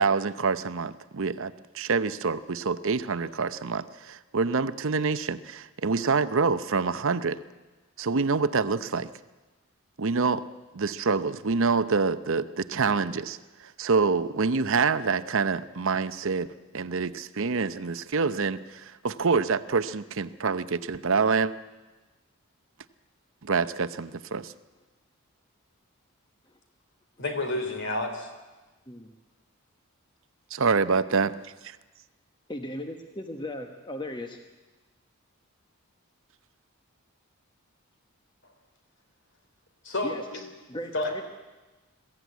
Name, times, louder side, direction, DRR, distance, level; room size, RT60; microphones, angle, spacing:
voice 1, 0.0-7.4 8.0-9.1 10.0-10.4 10.7-16.5 16.7-21.5 23.4-24.5 30.5-31.8, right 4 dB, 60° right, 13 dB, 0.7 m, -26 dB
voice 2, 27.2-28.3 39.8-40.4 40.9-41.2, left 2 dB, 55° left, 6 dB, 3.3 m, -30 dB
voice 3, 32.5-34.4 40.0-40.2 40.7-41.2, left 1 dB, 20° left, 5 dB, 1.1 m, -37 dB
21.5 x 15.0 x 9.3 m, 1.2 s
head